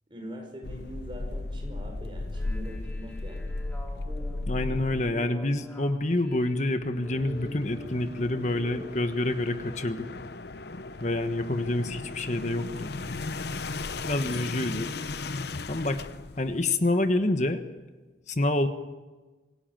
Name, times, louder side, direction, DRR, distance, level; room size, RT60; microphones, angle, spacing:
voice 1, 0.1-3.5 14.2-14.6, equal, 25° right, 3 dB, 5.3 m, -43 dB
sound 1, 0.6-5.3 6.7-16.6, left 3 dB, 60° left, 0.8 m, -36 dB
sound 2, 2.2-8.9, left 1 dB, 10° left, 3.1 m, -47 dB
voice 2, 4.5-10.1 11.0-13.0 14.0-14.9 15.7-16.1 16.4-17.6 18.3-18.7, left 2 dB, 40° left, 8 dB, 1.3 m, -27 dB
25.5 x 17.0 x 9.0 m, 1.3 s
head